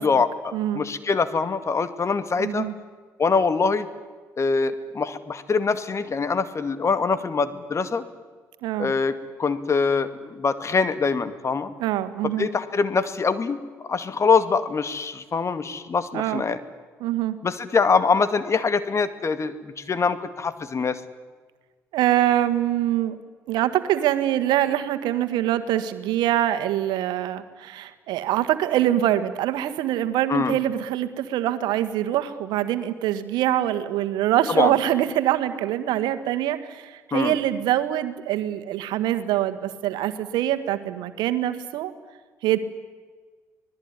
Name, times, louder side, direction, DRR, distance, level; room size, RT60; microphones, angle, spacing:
voice 1, 0.0-2.7 3.2-3.9 4.4-8.0 8.8-9.1 9.4-11.7 12.4-13.6 13.9-16.6 17.4-21.0 30.3-30.6 34.5-34.7 37.1-37.3, left 5 dB, 40° left, 12 dB, 2.2 m, -24 dB
voice 2, 0.5-0.8 2.4-2.7 8.6-8.9 11.8-12.5 16.1-16.4 17.0-17.4 21.9-23.2 23.5-41.9 42.4-42.6, right 12 dB, 75° right, 10 dB, 1.7 m, -24 dB
25.5 x 19.0 x 9.8 m, 1.4 s
hypercardioid pair, 60°, 8 cm